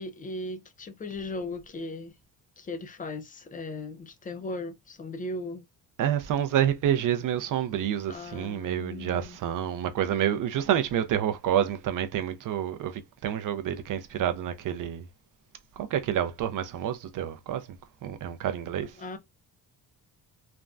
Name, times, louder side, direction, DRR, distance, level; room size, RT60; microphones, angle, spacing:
voice 1, 0.0-2.1 2.6-5.6 8.1-9.4 19.0-19.2, left 2 dB, 25° left, 0.3 m, -37 dB
voice 2, 6.0-15.0 15.8-17.7 18.0-19.0, right 10 dB, 55° right, 0.4 m, -28 dB
3.4 x 2.1 x 2.4 m
cardioid pair, 155°, 39 cm